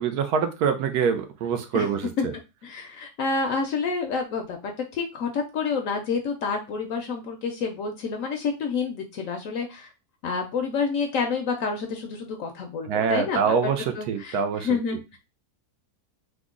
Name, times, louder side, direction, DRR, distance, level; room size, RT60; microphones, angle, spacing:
voice 1, 0.0-2.1 12.9-14.7, right 6 dB, 75° right, 7 dB, 1.1 m, -25 dB
voice 2, 2.6-9.9 10.2-13.7 13.9-15.2, left 5 dB, 65° left, 4 dB, 0.8 m, -28 dB
3.6 x 2.0 x 3.6 m, 0.27 s
omnidirectional pair, 1.7 m